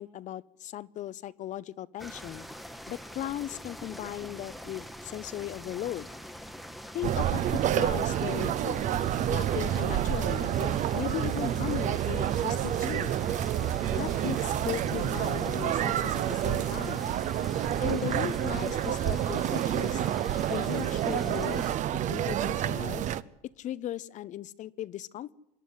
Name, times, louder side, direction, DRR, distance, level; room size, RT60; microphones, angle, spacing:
voice 1, 0.0-2.5 2.9-6.1 6.9-8.9 9.3-13.2 13.9-17.1 17.8-20.0 20.4-23.1 23.4-25.3, left 12 dB, 45° left, 19 dB, 0.7 m, -37 dB
sound 1, 2.0-21.8, equal, ahead, 1.0 m, -44 dB
sound 2, 7.0-23.2, right 11 dB, 45° right, 0.7 m, -29 dB
26.5 x 11.5 x 9.5 m, 0.86 s
cardioid pair, 125°, 17 cm